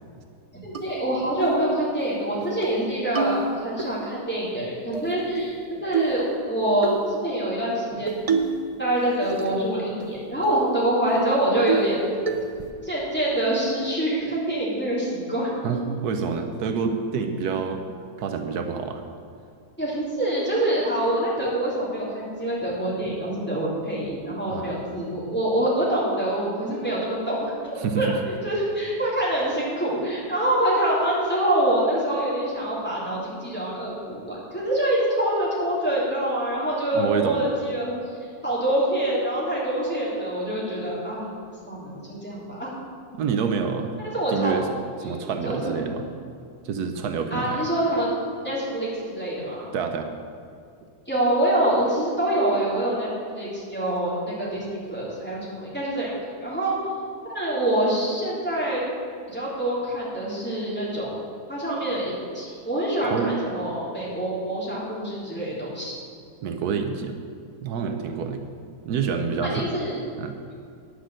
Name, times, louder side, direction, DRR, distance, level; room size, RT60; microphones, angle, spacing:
voice 1, 0.6-5.5 5.8-8.2 8.8-12.0 12.8-15.8 19.8-37.9 38.4-41.3 41.7-42.7 44.0-44.6 45.0-45.7 47.3-48.1 48.4-49.6 51.1-56.7 57.2-58.8 59.3-61.2 61.5-66.0 69.4-70.0, right 1 dB, 5° left, -8 dB, 3.2 m, -25 dB
sound 1, 0.7-0.8 1.4-1.6 2.0-2.1 2.4-2.8 3.1-3.9 4.9-5.6 5.9-6.2 6.8-7.0 8.1-8.6 9.0-9.6 10.0-10.1 10.4-10.7 11.1-11.2 11.7-12.0 12.3-12.7, right 5 dB, 50° right, 0.4 m, -27 dB
voice 2, 15.6-17.9 18.2-19.0 24.5-24.7 27.8-28.1 36.9-37.4 43.1-43.9 44.3-44.7 45.0-46.1 46.6-47.7 49.7-50.1 63.1-63.4 66.4-67.2 67.6-68.5 68.9-69.7 70.2-70.4, right 6 dB, 80° right, 6 dB, 1.2 m, -27 dB
9.8 x 6.6 x 7.6 m, 2.4 s
omnidirectional pair, 1.7 m